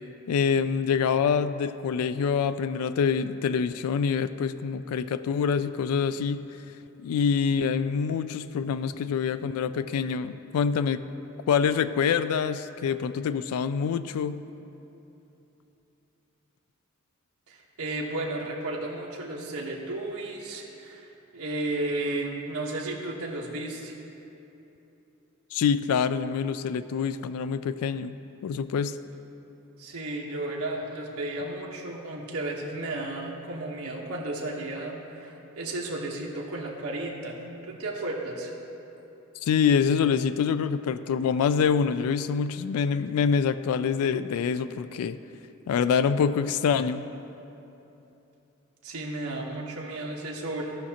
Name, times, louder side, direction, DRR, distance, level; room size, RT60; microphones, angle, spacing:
voice 1, 0.3-6.4 7.0-11.0 11.5-14.4 25.5-28.2 28.4-29.0 39.5-45.2 45.7-47.0, left 6 dB, 80° left, 13 dB, 0.3 m, -25 dB
voice 2, 17.5-23.9 29.8-37.4 37.6-38.5 48.8-50.8, right 2 dB, 80° right, -2 dB, 1.1 m, -33 dB
15.5 x 5.9 x 2.8 m, 3.0 s
head